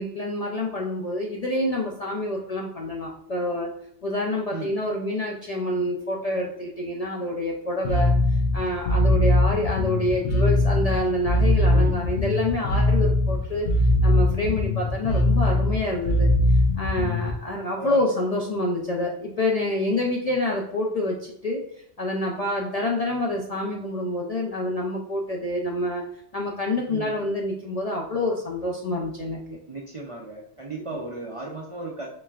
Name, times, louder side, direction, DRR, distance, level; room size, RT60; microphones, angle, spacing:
voice 1, 0.0-3.7 4.0-16.3 16.8-21.6 22.0-29.6, left 1 dB, 55° left, -1 dB, 0.4 m, -27 dB
Bass guitar, 7.8-17.3, left 1 dB, 85° left, 1.0 m, -21 dB
voice 2, 29.7-32.1, right 3 dB, 50° right, -2 dB, 0.4 m, -35 dB
4.2 x 3.2 x 2.3 m, 0.70 s
omnidirectional pair, 1.2 m